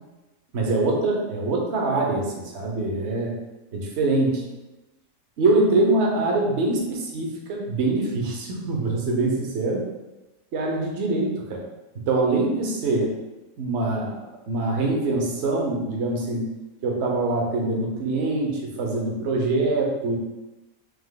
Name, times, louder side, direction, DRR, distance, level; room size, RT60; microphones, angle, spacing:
voice 1, 0.5-3.3 3.7-4.5 5.4-9.8 10.5-11.6 11.9-13.1 13.6-14.1 14.5-16.4 16.8-20.2, right 2 dB, 60° right, 0 dB, 1.0 m, -24 dB
3.5 x 3.0 x 3.7 m, 1.1 s
omnidirectional pair, 1.5 m